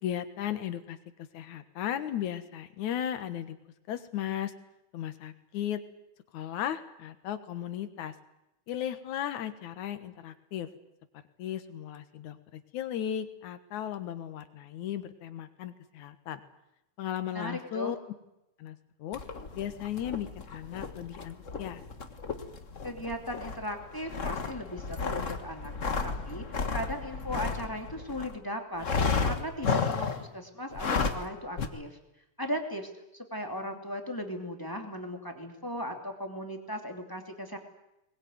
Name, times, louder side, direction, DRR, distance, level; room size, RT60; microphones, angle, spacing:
voice 1, 0.0-1.0 1.3-3.6 3.9-4.5 4.9-5.8 6.3-8.1 8.7-10.7 11.4-16.4 17.0-18.0 18.6-19.2 19.6-21.8, left 10 dB, 75° left, 10 dB, 2.8 m, -36 dB
voice 2, 17.3-18.0 22.8-25.7 26.0-26.4 26.7-28.8 29.2-32.0 32.4-37.6, equal, 5° left, 4 dB, 2.4 m, -37 dB
sound 1, 19.1-28.4 28.8-30.3 30.7-31.3 31.6-31.7, left 5 dB, 35° left, 1.2 m, -33 dB
22.0 x 21.0 x 9.4 m, 0.89 s
omnidirectional pair, 3.5 m